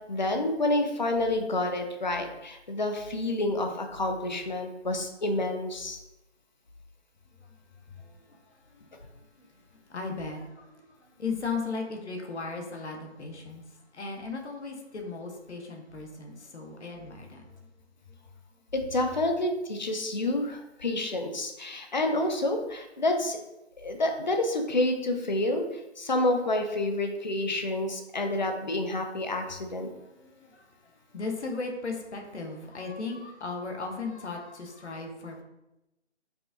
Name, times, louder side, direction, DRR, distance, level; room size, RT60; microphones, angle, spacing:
voice 1, 0.1-6.0 18.7-23.4 23.8-29.9, left 1 dB, 45° left, 5 dB, 0.4 m, -29 dB
voice 2, 7.7-13.6 13.9-17.6 30.0-35.4, left 4 dB, 70° left, 2 dB, 0.9 m, -37 dB
4.7 x 2.5 x 2.5 m, 0.92 s
figure-of-eight pair, 165°, 34 cm